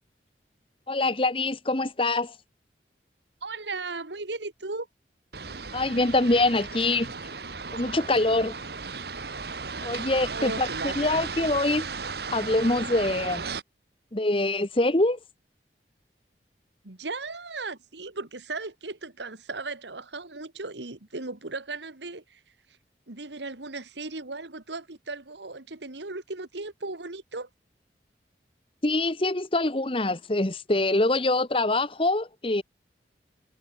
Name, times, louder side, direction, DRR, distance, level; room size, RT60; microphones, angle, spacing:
voice 1, 0.9-2.3 5.7-7.1 7.7-8.5 9.8-11.9 12.3-13.4 14.1-15.2 28.8-32.6, left 2 dB, 30° left, 1.3 m, -24 dB
voice 2, 3.4-4.9 10.3-11.2 16.8-22.4 23.1-27.5, right 3 dB, 80° right, 2.0 m, -36 dB
sound 1, 5.3-13.6, right 4 dB, 60° right, 1.7 m, -35 dB
head